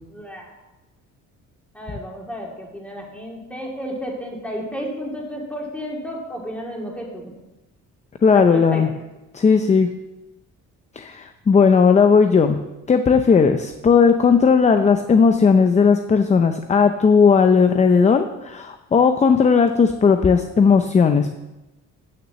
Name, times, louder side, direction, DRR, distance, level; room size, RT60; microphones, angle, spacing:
voice 1, 0.1-0.5 1.7-7.3 8.3-8.8, equal, 5° left, -1 dB, 2.4 m, -32 dB
voice 2, 8.2-8.9 9.3-9.9 11.0-12.6 12.9-21.3, left 5 dB, 20° left, 7 dB, 0.5 m, -16 dB
9.0 x 6.1 x 7.5 m, 1.0 s
cardioid pair, 120°, 32 cm